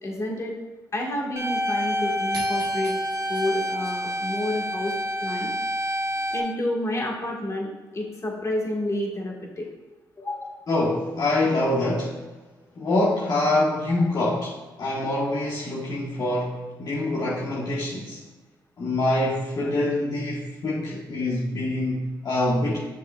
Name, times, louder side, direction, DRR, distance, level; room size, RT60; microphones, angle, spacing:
voice 1, 0.0-0.5 0.9-2.9 3.3-4.9 5.2-5.5 5.9-6.0 6.3-9.7 10.2-10.6, left 1 dB, 35° left, -1 dB, 1.6 m, -29 dB
sound 1, 1.4-6.4, equal, 35° right, 1.1 m, -28 dB
sound 2, 2.3-4.9, right 2 dB, 70° right, 1.6 m, -42 dB
voice 2, 10.7-12.2 12.8-18.2 18.8-22.8, left 1 dB, 50° left, -5 dB, 1.2 m, -25 dB
7.8 x 6.1 x 2.3 m, 1.2 s
supercardioid pair, 60°, 8 cm